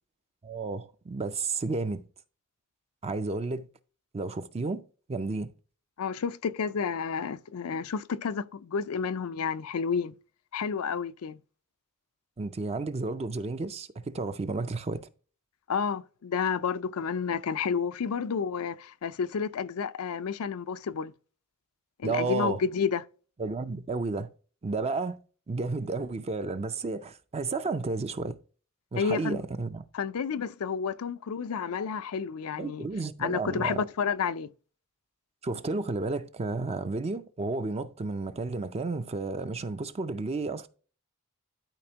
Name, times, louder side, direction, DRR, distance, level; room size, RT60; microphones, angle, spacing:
voice 1, 0.4-2.1 3.0-3.7 4.1-4.8 5.1-5.5 12.4-15.1 22.0-22.6 23.4-24.3 24.6-25.2 25.5-28.4 28.9-29.8 32.6-33.8 35.4-40.7, right 3 dB, 30° right, 0.4 m, -32 dB
voice 2, 6.0-10.1 10.5-11.4 15.7-21.1 22.0-23.0 29.0-29.4 29.9-32.9 33.2-34.5, left 6 dB, 85° left, 0.4 m, -30 dB
12.0 x 4.3 x 2.8 m
head